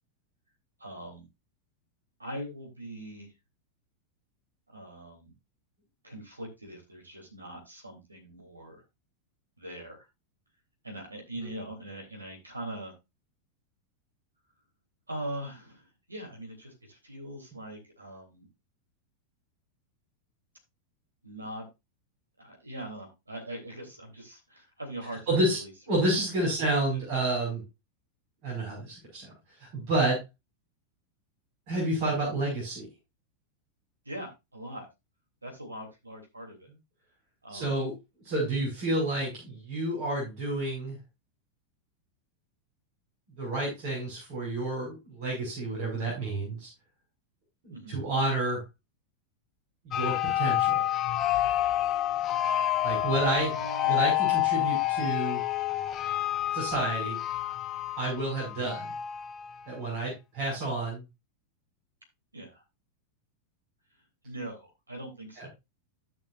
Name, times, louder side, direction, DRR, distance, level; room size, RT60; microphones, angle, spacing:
voice 1, 0.8-1.2 2.2-3.3 4.7-5.3 6.0-8.8 9.6-10.0 10.8-12.9 15.1-18.5 21.2-21.6 22.4-25.7 26.8-27.0 34.0-34.9 35.4-36.7 37.4-37.9 47.7-48.0 53.4-54.1 58.6-58.8 62.3-62.6 64.2-65.5, right 1 dB, 80° right, 2 dB, 3.4 m, -41 dB
voice 2, 25.3-25.6 25.9-27.6 28.4-29.3 29.6-30.2 31.7-32.9 37.5-37.9 38.2-41.0 43.4-46.7 47.6-48.6 49.8-50.8 52.8-53.5 53.9-55.4 56.5-57.2 58.0-58.8 59.7-61.0 65.4-65.5, right 2 dB, 45° right, -4 dB, 5.7 m, -29 dB
sound 1, 49.9-59.7, left 13 dB, 30° left, 0.6 m, -28 dB
15.0 x 6.1 x 2.6 m, 0.23 s
figure-of-eight pair, 90°, 0 cm